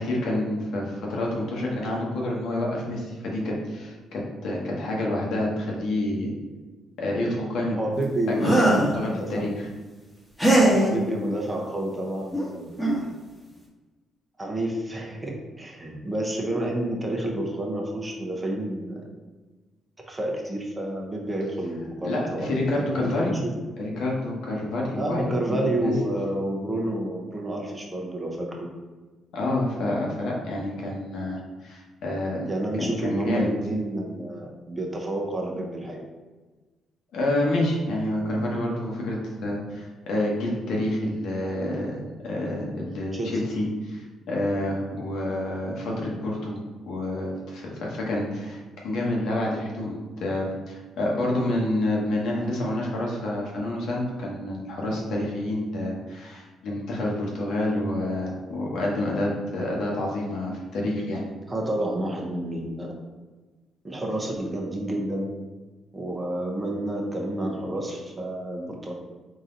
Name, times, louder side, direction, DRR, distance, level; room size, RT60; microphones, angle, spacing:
voice 1, 0.0-6.3 7.0-7.8 8.3-9.5 22.0-23.4 23.8-25.2 25.5-25.9 29.3-32.5 32.8-33.5 37.1-46.6 46.9-61.2, left 1 dB, 75° left, -2 dB, 1.1 m, -28 dB
voice 2, 7.8-9.5 10.7-13.0 14.4-19.0 20.1-23.5 24.9-28.5 32.5-36.0 43.1-43.4 61.5-62.9 63.8-65.3 65.9-68.9, right 1 dB, 20° right, -1 dB, 0.8 m, -29 dB
sound 1, 8.4-9.0 10.4-10.9 12.3-12.4 12.8-13.0, right 1 dB, 10° left, 1.3 m, -19 dB
3.9 x 2.8 x 3.8 m, 1.3 s
cardioid pair, 90°, 0 cm